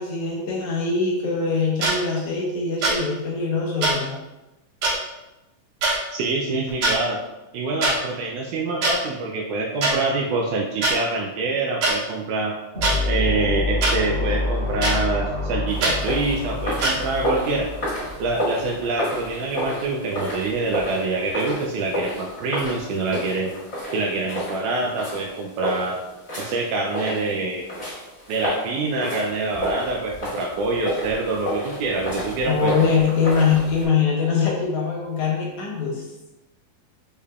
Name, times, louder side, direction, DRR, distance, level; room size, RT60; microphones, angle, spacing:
voice 1, 0.0-4.1 32.4-36.0, left 5 dB, 70° left, -3 dB, 1.9 m, -22 dB
sound 1, 1.8-1.9 2.8-3.0 3.8-3.9 4.8-4.9 5.8-6.0 6.7-6.9 7.8-7.9 8.8-8.9 9.8-9.9 10.8-10.9 11.8-11.9 12.8-12.9 13.8-13.9 14.8-14.9 15.8-15.9 16.8-16.9, right 2 dB, 70° right, 2.7 m, -21 dB
voice 2, 6.1-7.2 7.5-12.5 13.1-17.7 18.2-23.5 23.9-26.0 26.4-27.7 28.3-32.9, right 3 dB, 90° right, 0 dB, 1.7 m, -25 dB
sound 2, 12.7-19.2, left 2 dB, 40° right, 1.9 m, -27 dB
sound 3, 15.7-33.8, equal, 40° left, 1.0 m, -31 dB
6.4 x 3.4 x 2.3 m, 0.99 s
omnidirectional pair, 4.0 m